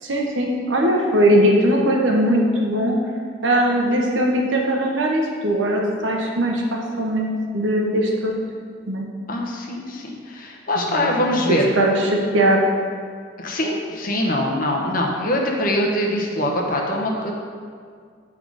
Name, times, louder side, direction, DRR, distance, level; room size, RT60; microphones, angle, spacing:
voice 1, 0.0-3.0 3.4-8.3 8.9-9.1 10.8-12.6, right 1 dB, 85° right, 0 dB, 1.2 m, -20 dB
voice 2, 9.3-11.7 13.4-17.3, left 1 dB, 50° left, -1 dB, 1.0 m, -23 dB
8.6 x 4.3 x 4.9 m, 2.1 s
head